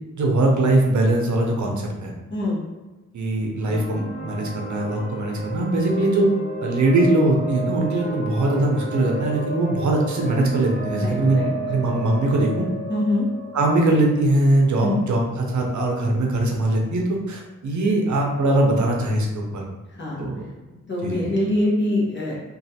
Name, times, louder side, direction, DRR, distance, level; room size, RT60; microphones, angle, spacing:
voice 1, 0.2-2.1 3.1-6.3 6.6-11.4 11.7-12.7 13.5-19.6 20.2-20.4 21.0-21.2, right 2 dB, 65° right, 0 dB, 0.6 m, -21 dB
sound 1, 3.6-15.2, right 2 dB, 5° right, 1.1 m, -32 dB
voice 2, 10.9-11.5 12.9-13.3 14.8-15.0 20.0-20.3 20.9-22.4, left 1 dB, 35° left, -5 dB, 0.9 m, -24 dB
3.1 x 2.4 x 2.7 m, 1.1 s
wide cardioid pair, 105°, 31 cm